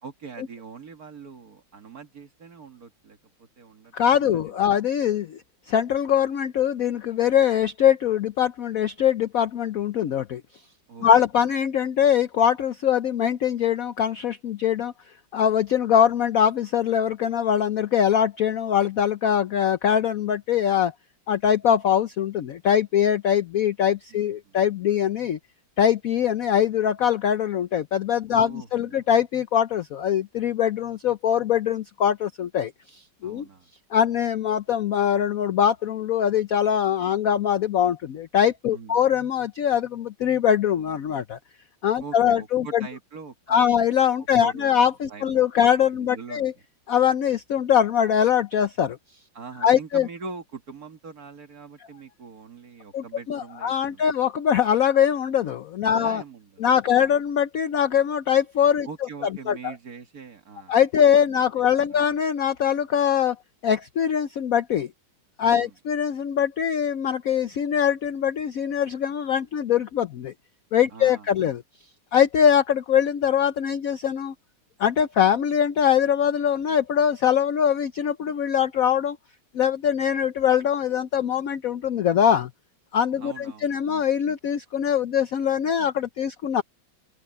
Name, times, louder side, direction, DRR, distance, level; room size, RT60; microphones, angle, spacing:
voice 1, 0.0-4.8 10.9-11.2 24.1-24.6 28.3-29.1 33.2-33.7 38.7-39.0 42.0-43.8 44.4-45.7 46.0-46.5 49.3-54.0 55.9-57.1 58.9-60.8 61.0-62.1 65.5-65.8 70.9-71.5 83.2-83.9, right 5 dB, 45° right, 2.2 m, -43 dB
voice 2, 3.9-5.4 5.7-10.4 11.0-14.9 15.3-20.9 21.3-25.4 25.8-33.5 33.9-41.4 41.8-42.8 43.5-46.5 46.9-49.0 49.6-50.1 52.9-56.2 56.6-58.9 59.5-59.7 60.7-63.4 63.6-64.9 65.4-70.3 70.7-71.6 72.1-74.3 74.8-79.2 79.5-82.5 82.9-86.6, left 9 dB, 75° left, 0.7 m, -22 dB
open air
omnidirectional pair, 2.3 m